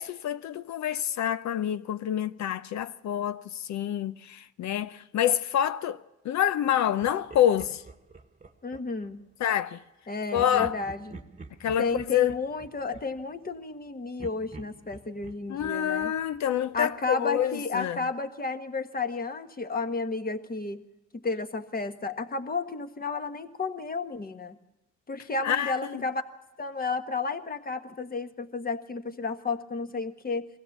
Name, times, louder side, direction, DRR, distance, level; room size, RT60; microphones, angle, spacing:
voice 1, 0.0-6.0 6.2-7.8 9.4-9.8 10.3-10.8 11.6-12.3 15.5-18.0 25.4-26.0, left 10 dB, 65° left, 0.7 m, -27 dB
Laughter, 7.0-9.1 10.3-13.8 14.2-16.9, right 3 dB, 25° right, 1.3 m, -48 dB
voice 2, 8.6-9.2 10.1-11.2 11.8-16.1 16.7-20.8 21.1-24.6 25.1-26.2 26.6-30.5, left 4 dB, 30° left, 1.5 m, -32 dB
22.5 x 16.0 x 7.4 m
cardioid pair, 90°, 30 cm